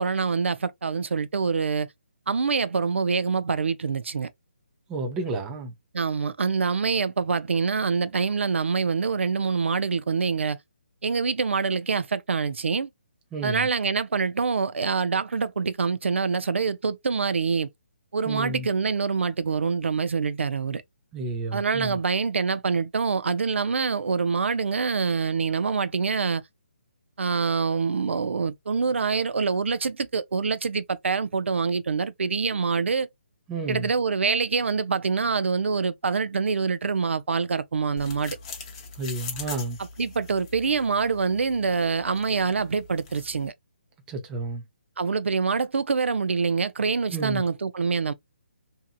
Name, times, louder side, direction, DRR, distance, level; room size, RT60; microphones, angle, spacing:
voice 1, 0.0-1.9 2.3-4.3 5.9-10.6 11.0-12.9 13.4-17.7 18.1-20.8 21.5-26.4 27.2-33.1 33.7-38.4 40.0-43.5 45.0-48.1, right 5 dB, 80° right, 0.4 m, -25 dB
voice 2, 4.9-5.7 13.3-13.7 18.3-18.7 21.1-22.0 33.5-33.9 39.0-39.8 44.1-44.6 47.1-47.4, right 3 dB, 10° right, 0.4 m, -31 dB
sound 1, 38.0-43.5, left 5 dB, 30° left, 0.7 m, -42 dB
2.7 x 2.5 x 2.3 m
hypercardioid pair, 165°, 6 cm